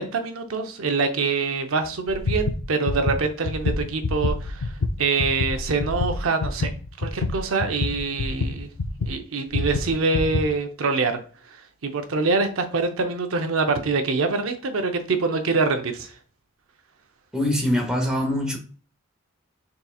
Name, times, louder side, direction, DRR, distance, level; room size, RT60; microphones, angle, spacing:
voice 1, 0.0-6.7 7.0-8.7 9.1-11.2 11.5-16.1, right 4 dB, 75° right, 0.6 m, -25 dB
sound 1, 2.1-9.2 9.5-10.4, left 3 dB, 75° left, 0.4 m, -27 dB
voice 2, 17.3-18.6, left 1 dB, 5° right, 0.9 m, -23 dB
4.1 x 3.8 x 2.3 m
head